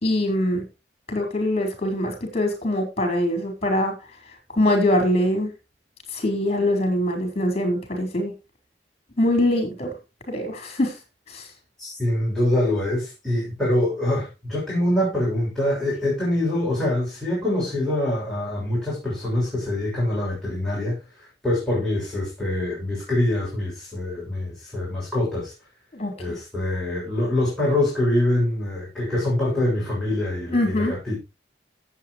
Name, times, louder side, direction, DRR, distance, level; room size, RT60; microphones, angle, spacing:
voice 1, 0.0-0.6 1.1-4.0 4.5-5.5 6.1-8.3 9.2-9.9 10.3-11.0 11.3-11.5 25.9-26.4 30.5-31.0, left 1 dB, 35° left, 4.8 m, -23 dB
voice 2, 11.8-21.0 21.4-25.5 26.2-31.2, left 1 dB, ahead, 7.2 m, -24 dB
17.5 x 8.4 x 3.2 m
head